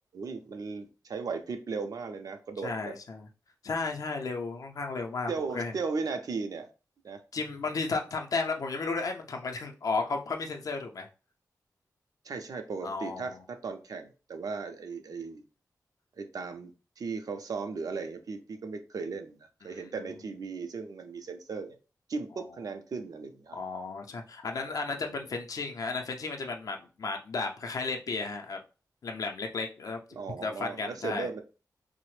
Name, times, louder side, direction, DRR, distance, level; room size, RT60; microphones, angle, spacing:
voice 1, 0.1-3.0 5.3-6.7 7.0-7.2 12.2-15.4 16.2-16.7 17.0-21.7 22.1-23.6 24.9-25.2 30.1-31.4, right 4 dB, 65° right, 6 dB, 0.5 m, -37 dB
voice 2, 2.6-3.3 3.6-5.7 7.3-11.1 12.8-13.4 19.6-19.9 23.5-28.6 29.0-30.0 30.4-31.3, left 4 dB, 60° left, 3 dB, 0.5 m, -34 dB
3.2 x 2.0 x 3.1 m, 0.32 s
wide cardioid pair, 130°, 7 cm